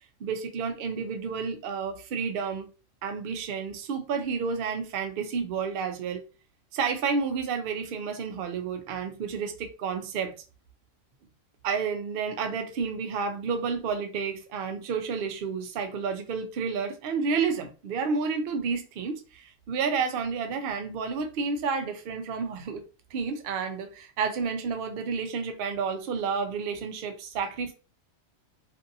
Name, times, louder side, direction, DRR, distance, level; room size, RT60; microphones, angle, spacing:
voice 1, 0.2-2.7 3.0-6.2 6.7-10.3 11.6-22.8 23.1-27.7, right 5 dB, 60° right, 0.6 m, -30 dB
2.6 x 2.5 x 2.6 m
omnidirectional pair, 1.4 m